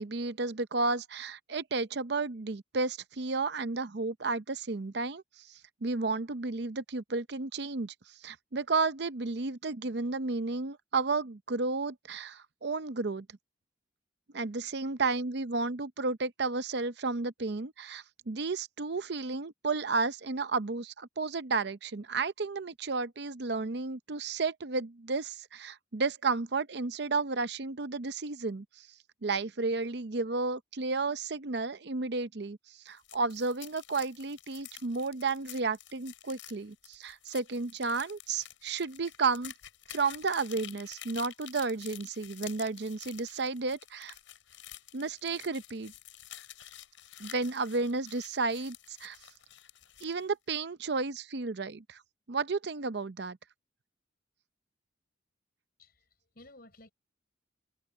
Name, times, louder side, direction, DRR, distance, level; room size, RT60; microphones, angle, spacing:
voice 1, 0.0-5.2 5.5-7.9 8.2-13.3 14.3-28.9 29.2-39.5 39.9-44.1 44.9-45.9 47.2-49.2 50.0-52.0 52.3-53.4, right 4 dB, 55° right, 0.7 m, -32 dB
sound 1, 32.9-50.2, left 12 dB, 80° left, 6.2 m, -50 dB
voice 2, 55.8-56.9, left 2 dB, 50° left, 6.2 m, -55 dB
head